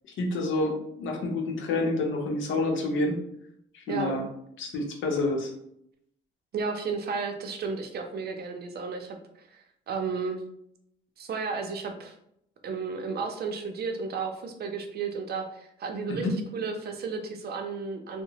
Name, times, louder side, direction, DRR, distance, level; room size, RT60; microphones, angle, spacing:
voice 1, 0.2-3.2 3.7-4.3 4.6-5.5 16.1-16.3, left 2 dB, 75° left, 2 dB, 0.7 m, -28 dB
voice 2, 3.9-4.2 6.5-9.2 9.5-10.4 11.2-12.1 12.6-18.2, right 5 dB, 55° right, 4 dB, 0.5 m, -33 dB
2.8 x 2.1 x 2.8 m, 0.74 s
cardioid pair, 90°, 20 cm